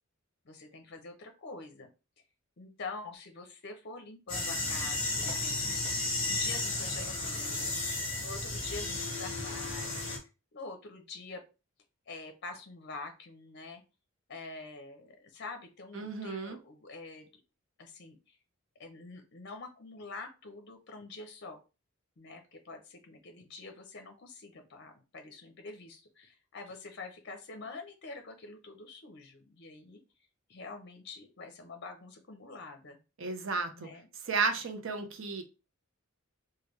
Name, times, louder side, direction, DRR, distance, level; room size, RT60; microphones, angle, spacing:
voice 1, 0.4-1.9 2.6-7.7 8.2-10.1 10.5-11.4 12.1-13.8 14.3-17.3 17.8-18.4 18.8-21.6 22.2-30.0 30.5-33.0 33.7-34.1, left 3 dB, 55° left, 0.6 m, -46 dB
sound 1, 4.3-10.2, left 2 dB, 25° left, 1.1 m, -33 dB
voice 2, 15.9-16.6 33.2-33.9 34.2-35.4, right 4 dB, 60° right, 0.6 m, -33 dB
3.3 x 2.2 x 3.0 m
head